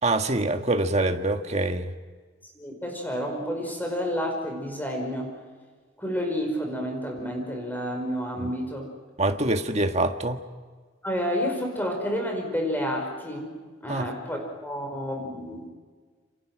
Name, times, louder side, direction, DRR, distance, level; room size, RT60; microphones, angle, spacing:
voice 1, 0.0-1.9 8.4-8.5 9.2-10.4 13.9-14.1, right 2 dB, 35° right, 6 dB, 1.6 m, -25 dB
voice 2, 2.6-5.3 6.0-8.9 11.0-15.7, equal, 10° left, 2 dB, 5.3 m, -30 dB
29.0 x 27.0 x 6.2 m, 1.5 s
head